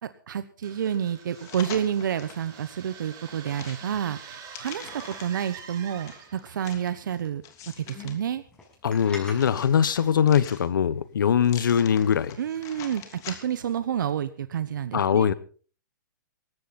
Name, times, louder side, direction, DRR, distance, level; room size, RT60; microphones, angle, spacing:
voice 1, 0.0-7.4 7.8-8.4 12.4-15.3, right 9 dB, 70° right, 13 dB, 1.1 m, -29 dB
sound 1, 0.6-6.5, right 7 dB, 35° right, 5.5 m, -45 dB
sound 2, 1.3-2.4 2.9-5.5 6.1-8.2 8.6-10.9 11.4-13.7 14.1-14.2, left 9 dB, 30° left, 3.0 m, -44 dB
sound 3, 4.4-12.9, left 2 dB, 10° left, 6.4 m, -51 dB
voice 2, 8.8-12.4 14.9-15.3, left 8 dB, 75° left, 17 dB, 1.2 m, -22 dB
19.0 x 14.5 x 4.2 m, 0.41 s
hypercardioid pair, 130°, 11 cm